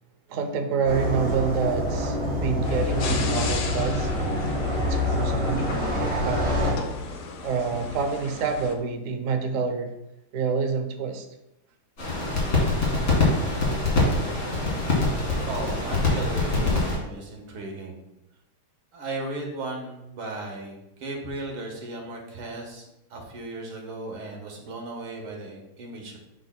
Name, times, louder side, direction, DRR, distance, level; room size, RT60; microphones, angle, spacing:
voice 1, 0.3-4.1 4.7-6.9 7.4-9.9 10.3-11.3, right 5 dB, 65° right, 6 dB, 0.8 m, -28 dB
sound 1, 0.8-6.7, left 1 dB, 35° right, 3.0 m, -26 dB
sound 2, 2.6-8.7, left 4 dB, 70° left, 1.5 m, -35 dB
sound 3, 12.0-17.0, left 2 dB, 40° left, 2.2 m, -24 dB
voice 2, 15.4-18.0 18.9-26.2, right 2 dB, 90° right, 1 dB, 2.2 m, -36 dB
8.7 x 6.4 x 2.2 m, 0.88 s
omnidirectional pair, 2.3 m